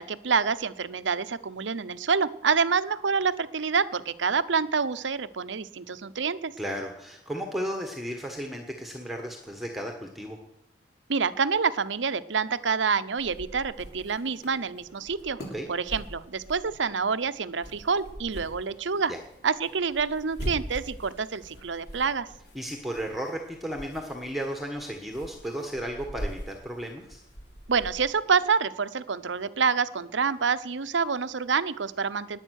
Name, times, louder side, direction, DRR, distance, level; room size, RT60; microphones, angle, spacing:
voice 1, 0.0-6.5 11.1-15.4 15.7-19.1 19.4-22.3 27.7-32.4, right 5 dB, 85° right, 13 dB, 0.8 m, -27 dB
voice 2, 6.6-10.4 15.5-15.7 19.1-19.2 22.5-27.2, equal, ahead, 2 dB, 1.3 m, -34 dB
sound 1, 13.2-28.4, equal, 65° left, 3.5 m, -43 dB
20.0 x 8.6 x 6.5 m, 0.86 s
head